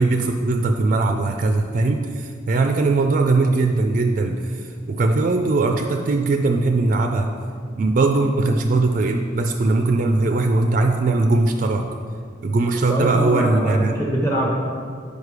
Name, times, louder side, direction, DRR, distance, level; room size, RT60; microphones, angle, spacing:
voice 1, 0.0-7.3 7.8-11.8 12.4-13.9, right 3 dB, 45° right, 5 dB, 0.3 m, -20 dB
voice 2, 12.7-14.5, right 1 dB, 15° left, -3 dB, 0.8 m, -23 dB
6.5 x 5.2 x 4.8 m, 2.1 s
head